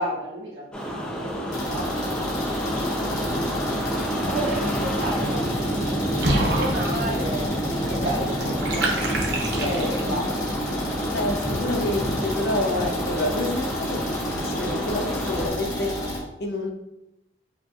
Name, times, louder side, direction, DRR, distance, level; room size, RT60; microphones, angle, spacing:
voice 1, 0.0-1.9 4.2-7.5 7.9-9.1 9.5-10.3, right 1 dB, 85° right, 1.3 m, -32 dB
sound 1, 0.7-15.5, equal, 5° left, 0.4 m, -29 dB
sound 2, 1.5-16.2, left 1 dB, 20° left, 0.9 m, -31 dB
Water / Bathtub (filling or washing), 6.2-10.2, right 1 dB, 60° right, 0.6 m, -28 dB
voice 2, 11.1-16.7, left 2 dB, 60° left, 0.5 m, -28 dB
4.9 x 2.7 x 2.3 m
head